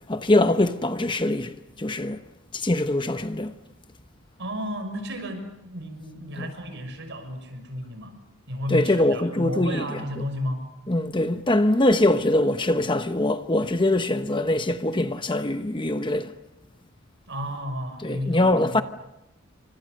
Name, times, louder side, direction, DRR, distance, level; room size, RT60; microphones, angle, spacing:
voice 1, 0.1-2.2 2.5-3.5 6.4-6.5 8.7-10.2 10.9-16.3 18.0-18.8, left 1 dB, 20° left, 1.0 m, -23 dB
voice 2, 4.4-8.2 8.5-10.7 17.3-18.6, left 1 dB, 55° right, 6.1 m, -32 dB
29.5 x 26.5 x 6.7 m
head